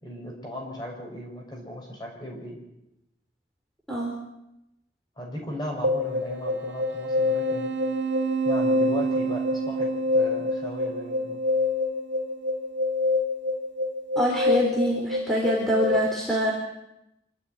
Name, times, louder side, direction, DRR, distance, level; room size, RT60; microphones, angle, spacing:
voice 1, 0.0-2.6 5.2-7.7 8.4-11.4, equal, 25° left, 0 dB, 6.3 m, -37 dB
sound 1, 5.8-16.0, left 1 dB, 90° right, 2.4 m, -26 dB
voice 2, 14.2-16.5, equal, ahead, -2 dB, 3.7 m, -25 dB
26.5 x 13.5 x 9.6 m, 0.87 s
head